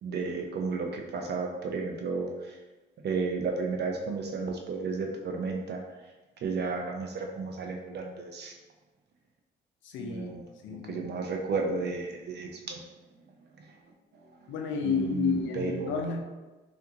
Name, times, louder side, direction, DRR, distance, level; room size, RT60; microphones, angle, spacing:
voice 1, 0.0-2.5 3.0-5.8 6.4-8.5 10.0-12.8 14.8-16.0, right 4 dB, 55° right, 2 dB, 0.5 m, -33 dB
voice 2, 9.8-10.4 10.6-11.1 14.5-16.2, left 5 dB, 75° left, 3 dB, 0.5 m, -31 dB
3.4 x 2.5 x 2.8 m, 1.2 s
cardioid pair, 90°, 20 cm